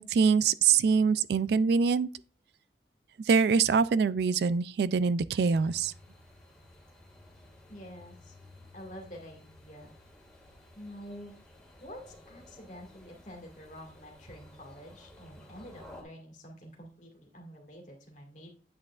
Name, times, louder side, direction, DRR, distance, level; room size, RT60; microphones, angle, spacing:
voice 1, 0.0-2.1 3.3-5.9, right 5 dB, 60° right, 0.3 m, -24 dB
sound 1, 5.5-16.0, left 1 dB, 5° left, 1.9 m, -54 dB
voice 2, 7.7-8.4 8.7-9.9 10.7-11.4 11.8-18.5, equal, 40° left, 1.9 m, -48 dB
8.8 x 8.2 x 2.4 m
head